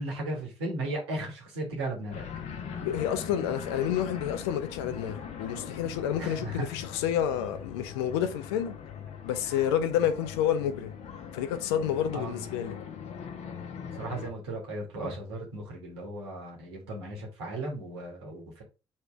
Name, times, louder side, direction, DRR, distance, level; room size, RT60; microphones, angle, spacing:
voice 1, 0.0-2.2 6.2-6.7 12.1-12.4 13.9-18.6, right 1 dB, 80° right, 1.5 m, -36 dB
sound 1, 2.1-14.3, left 7 dB, 60° left, 0.9 m, -41 dB
voice 2, 2.8-8.8 9.2-10.9 11.3-12.8, left 10 dB, 80° left, 0.5 m, -29 dB
3.2 x 3.2 x 4.6 m
hypercardioid pair, 45°, 13 cm